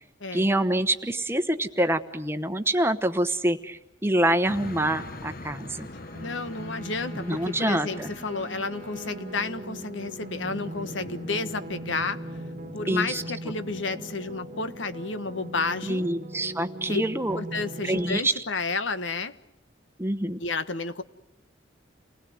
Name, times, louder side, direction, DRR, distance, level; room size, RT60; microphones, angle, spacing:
voice 1, 0.3-5.9 7.1-8.1 12.9-13.2 15.8-17.4 17.8-18.4 20.0-20.4, right 1 dB, 10° right, 9 dB, 1.1 m, -26 dB
sound 1, 4.5-18.7, left 2 dB, 50° left, 1.1 m, -45 dB
Trumpet, 4.9-9.4, equal, 10° left, 3.3 m, -51 dB
sound 2, 6.1-18.2, right 1 dB, 40° right, 1.5 m, -40 dB
voice 2, 6.2-12.2 12.7-16.1 16.9-17.0 17.3-19.4 20.4-21.0, left 4 dB, 80° left, 12 dB, 1.3 m, -31 dB
29.0 x 20.0 x 9.5 m, 0.89 s
head